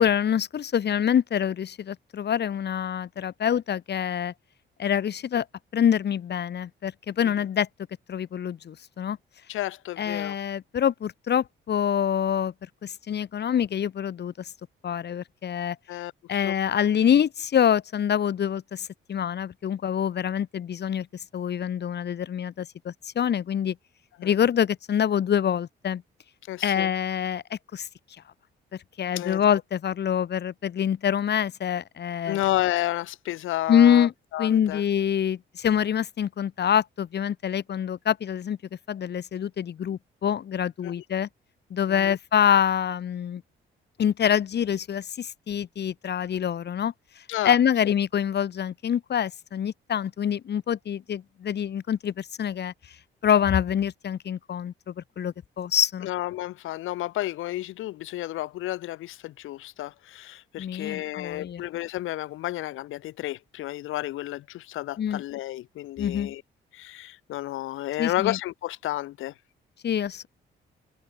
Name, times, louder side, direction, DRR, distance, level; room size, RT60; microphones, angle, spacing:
voice 1, 0.0-4.3 4.8-5.5 5.7-7.7 8.1-9.2 10.0-12.5 12.8-14.5 14.8-15.8 16.3-23.8 24.2-26.0 26.6-27.9 29.0-32.4 33.7-34.1 34.4-38.6 38.9-41.3 41.7-43.4 44.0-52.7 53.2-56.1 60.6-61.6 65.0-65.2 66.0-66.3 68.0-68.4 69.8-70.3, left 9 dB, 55° left, 3.4 m, -25 dB
voice 2, 9.5-10.4 15.9-16.1 16.4-16.5 24.2-24.4 26.5-26.9 29.1-29.4 32.3-34.8 40.8-40.9 41.9-42.2 47.3-47.5 47.8-47.9 56.0-66.4 66.7-69.3, left 15 dB, 90° left, 4.9 m, -31 dB
cardioid pair, 90°, 20 cm